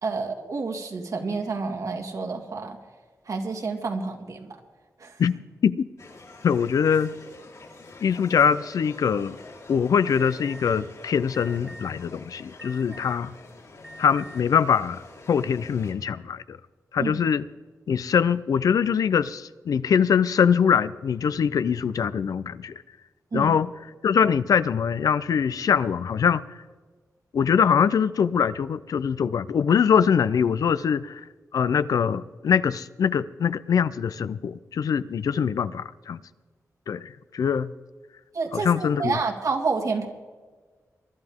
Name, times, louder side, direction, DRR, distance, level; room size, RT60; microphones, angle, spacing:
voice 1, 0.0-2.8 3.3-4.6 5.0-5.2 12.9-13.0 17.0-17.2 23.3-23.5 38.3-40.1, right 4 dB, 65° right, 3 dB, 2.1 m, -29 dB
sound 1, 6.0-15.9, left 3 dB, 70° left, 4.0 m, -46 dB
voice 2, 6.4-7.1 8.0-9.4 9.7-13.3 14.0-15.0 15.3-16.6 16.9-17.4 17.9-22.7 23.3-23.7 24.0-26.4 27.3-31.2 31.5-36.2 36.9-37.7 38.5-39.2, left 7 dB, 90° left, 16 dB, 0.5 m, -23 dB
Alarm, 10.1-10.7 11.3-11.9 12.6-13.2 13.8-14.4, right 1 dB, 5° right, 0.9 m, -44 dB
23.0 x 11.5 x 3.6 m, 1.4 s
wide cardioid pair, 90°, 6 cm